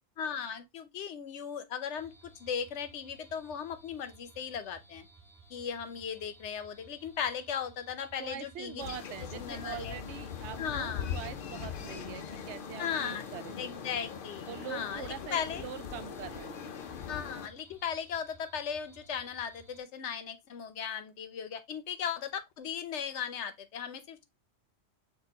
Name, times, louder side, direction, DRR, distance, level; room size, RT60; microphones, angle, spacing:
voice 1, 0.2-5.0 5.5-9.0 9.3-9.9 10.6-11.1 12.8-13.2 13.6-15.6 17.1-24.2, left 7 dB, 90° left, 1.0 m, -37 dB
sound 1, 2.0-19.8, right 3 dB, ahead, 0.9 m, -58 dB
voice 2, 8.2-13.6 14.4-16.6, right 9 dB, 85° right, 0.9 m, -43 dB
sound 2, 8.8-17.5, left 7 dB, 60° left, 0.7 m, -41 dB
6.3 x 2.5 x 2.8 m
omnidirectional pair, 1.1 m